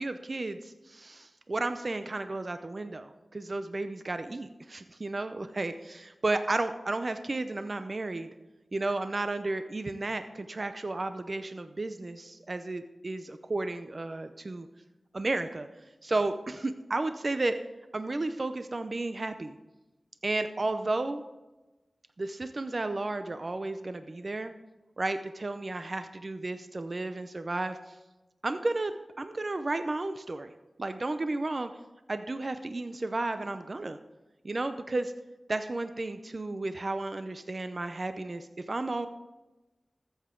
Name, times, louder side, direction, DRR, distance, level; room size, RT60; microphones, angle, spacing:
voice 1, 0.0-8.3 8.7-14.7 15.1-15.7 16.0-17.6 17.9-19.5 20.2-21.2 22.2-24.5 25.0-28.0 28.4-30.5 30.8-31.7 32.1-34.0 34.4-35.1 35.5-39.1, right 2 dB, 50° right, 9 dB, 0.6 m, -33 dB
14.0 x 7.9 x 3.8 m, 1.1 s
cardioid pair, 50°, 0 cm